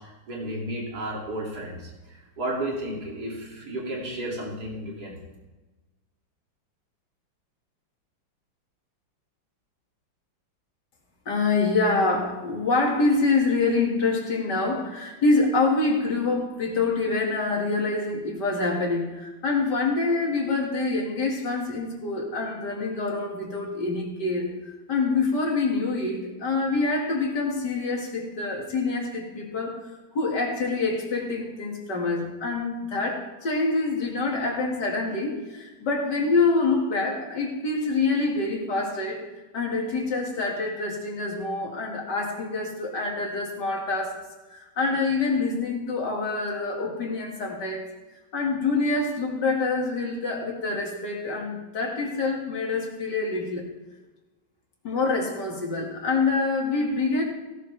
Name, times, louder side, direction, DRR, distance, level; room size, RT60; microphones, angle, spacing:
voice 1, 0.3-1.8 2.4-5.1, right 1 dB, 50° right, -2 dB, 3.2 m, -32 dB
voice 2, 11.3-39.2 39.5-44.2 44.5-47.9 48.3-53.7 54.8-57.2, left 3 dB, 55° left, 0 dB, 2.7 m, -26 dB
16.5 x 11.5 x 3.4 m, 1.2 s
omnidirectional pair, 2.2 m